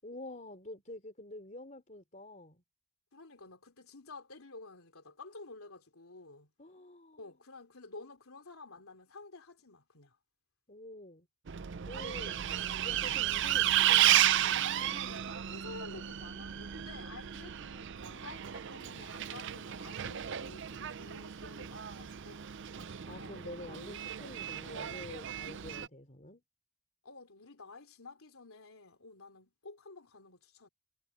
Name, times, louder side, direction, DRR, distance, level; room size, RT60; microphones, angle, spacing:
voice 1, 0.0-2.6 6.6-7.3 10.7-11.3 11.8-12.4 12.8-14.2 22.8-26.4, left 1 dB, 35° left, 3.6 m, -48 dB
voice 2, 3.1-6.5 7.2-10.2 12.4-12.6 14.9-22.4 23.2-23.4 27.0-30.7, left 3 dB, 70° left, 3.3 m, -51 dB
Bus, 11.5-25.9, right 12 dB, 55° right, 0.5 m, -33 dB
head